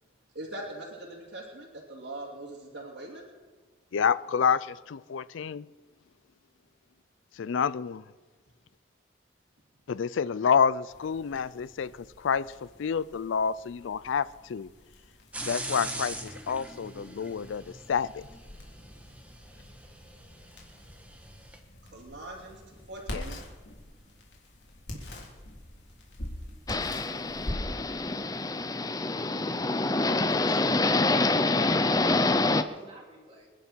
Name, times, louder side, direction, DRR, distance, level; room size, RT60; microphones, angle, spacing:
voice 1, 0.3-3.2 21.9-23.4 24.9-25.0 27.2-27.3 30.3-30.6, right 1 dB, 65° right, -6 dB, 2.8 m, -42 dB
voice 2, 3.9-5.6 7.4-8.0 9.9-11.9 12.2-12.5 12.8-14.7 15.4-18.3 23.1-23.2, left 6 dB, 80° left, 18 dB, 0.4 m, -28 dB
sound 1, 10.9-30.5, left 1 dB, 65° left, 3.4 m, -45 dB
sound 2, 15.3-21.6, right 2 dB, 10° right, 1.3 m, -42 dB
sound 3, 26.7-32.6, left 2 dB, 20° left, 0.5 m, -26 dB
voice 3, 30.4-33.5, right 1 dB, 30° right, -3 dB, 3.0 m, -48 dB
26.5 x 11.0 x 4.5 m, 1.3 s
head